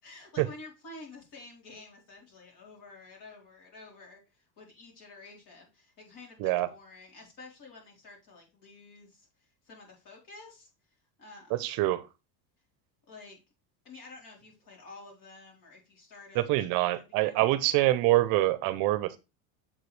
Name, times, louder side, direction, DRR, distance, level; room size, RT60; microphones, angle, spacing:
voice 1, 0.0-10.7 11.2-11.7 13.1-13.4 13.8-17.6, left 3 dB, 50° left, 3.6 m, -50 dB
voice 2, 11.6-12.0 16.3-19.2, right 16 dB, 55° right, 0.7 m, -25 dB
7.4 x 4.9 x 3.2 m
supercardioid pair, 135°, 42 cm